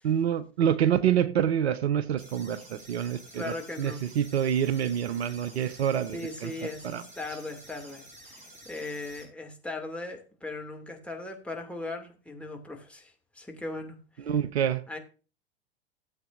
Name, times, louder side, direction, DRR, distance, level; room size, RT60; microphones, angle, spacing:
voice 1, 0.0-6.5 6.8-7.0 14.3-14.8, right 9 dB, 70° right, 0.8 m, -27 dB
sound 1, 2.2-9.2, right 1 dB, 20° right, 4.8 m, -50 dB
voice 2, 3.3-4.0 6.1-14.0 14.9-15.0, left 2 dB, 5° left, 2.5 m, -38 dB
16.0 x 8.0 x 2.6 m
figure-of-eight pair, 85°, 33 cm